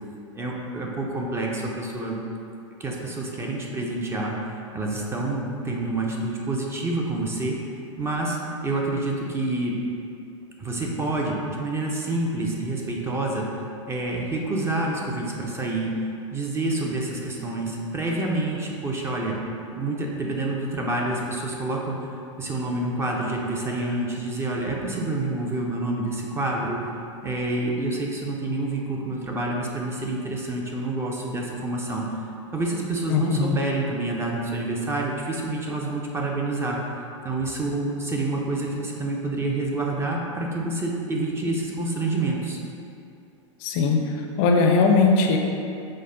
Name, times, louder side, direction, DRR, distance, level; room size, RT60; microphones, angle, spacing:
voice 1, 0.3-2.2 2.8-4.3 4.7-7.5 8.0-8.4 8.6-9.8 10.6-13.4 13.9-15.9 16.3-19.4 19.8-22.0 22.4-26.8 27.2-32.0 32.5-36.8 37.2-42.6, right 2 dB, 15° right, -2 dB, 0.4 m, -27 dB
voice 2, 33.1-33.6 43.6-44.0 44.4-45.4, left 4 dB, 45° left, 2 dB, 0.4 m, -19 dB
5.2 x 2.1 x 3.8 m, 2.6 s
hypercardioid pair, 125°, 16 cm